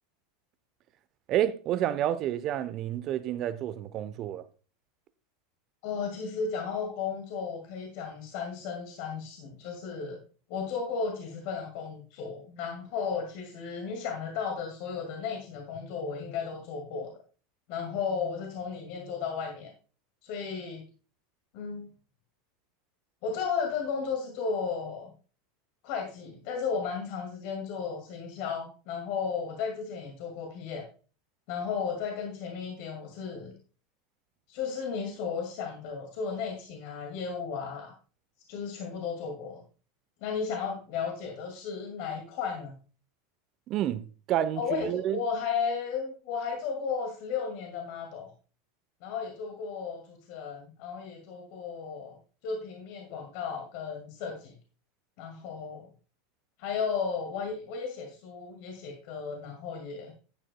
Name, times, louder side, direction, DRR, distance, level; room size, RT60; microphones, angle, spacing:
voice 1, 1.3-4.4 43.7-44.0 44.3-45.2, right 11 dB, 45° right, 0.8 m, -29 dB
voice 2, 5.8-10.2 10.5-17.2 17.7-19.7 20.2-20.8 21.5-21.9 23.2-25.1 25.8-30.8 31.5-33.5 34.5-37.9 38.5-39.6 40.2-42.7 44.6-48.3 49.0-52.2 52.4-54.5 55.2-55.9 56.6-60.1, left 6 dB, 55° left, 2.1 m, -34 dB
12.0 x 9.1 x 2.2 m
figure-of-eight pair, 80°, 0 cm